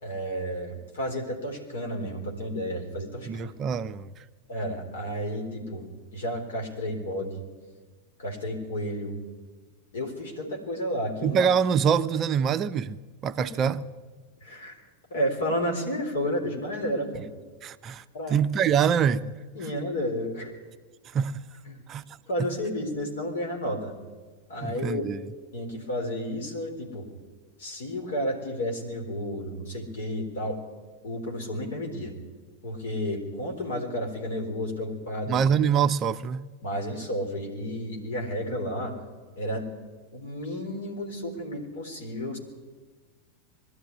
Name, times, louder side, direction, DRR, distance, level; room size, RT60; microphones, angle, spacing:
voice 1, 0.0-3.5 4.5-7.4 8.2-9.2 9.9-11.4 13.4-13.5 14.4-14.8 15.1-17.2 18.1-18.4 19.5-20.5 21.7-21.8 22.3-23.9 24.5-25.0 25.5-27.1 27.6-30.6 31.0-32.1 32.6-35.4 36.6-38.9 39.4-39.7 40.1-42.4, equal, 60° left, 4.1 m, -31 dB
voice 2, 3.3-4.1 11.2-13.0 13.2-13.8 17.6-18.0 18.3-19.4 21.1-21.4 21.9-22.0 24.6-25.2 35.3-36.5, right 7 dB, 30° right, 0.6 m, -24 dB
21.5 x 12.5 x 9.7 m
figure-of-eight pair, 90°, 0 cm